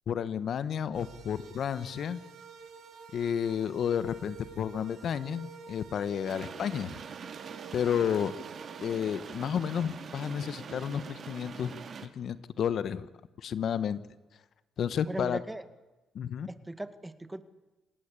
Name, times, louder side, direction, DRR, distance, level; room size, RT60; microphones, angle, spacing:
voice 1, 0.1-2.2 3.1-7.0 7.7-8.3 8.8-11.8 12.1-13.0 13.4-14.0 14.8-15.4 16.1-16.5, left 8 dB, 65° left, 14 dB, 1.3 m, -31 dB
sound 1, 0.9-8.9, right 5 dB, 70° right, 7.0 m, -49 dB
sound 2, 6.3-12.1, right 6 dB, 50° right, 2.5 m, -44 dB
voice 2, 15.0-15.7 16.5-17.4, right 1 dB, 10° right, 11 dB, 1.9 m, -38 dB
27.0 x 19.0 x 8.5 m, 1.1 s
cardioid pair, 90°, 0 cm